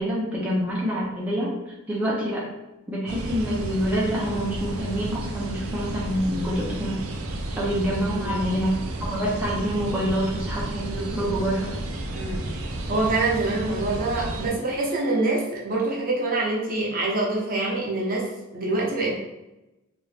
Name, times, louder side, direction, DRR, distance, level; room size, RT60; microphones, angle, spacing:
voice 1, 0.0-1.5 1.9-2.4 2.9-7.0 7.6-11.7, equal, 5° right, -6 dB, 0.6 m, -26 dB
sound 1, 3.1-14.5, right 1 dB, 75° right, 0.4 m, -32 dB
voice 2, 12.1-12.4 12.9-18.3 18.5-19.2, right 2 dB, 45° right, -4 dB, 0.8 m, -25 dB
2.9 x 2.6 x 3.2 m, 0.98 s
head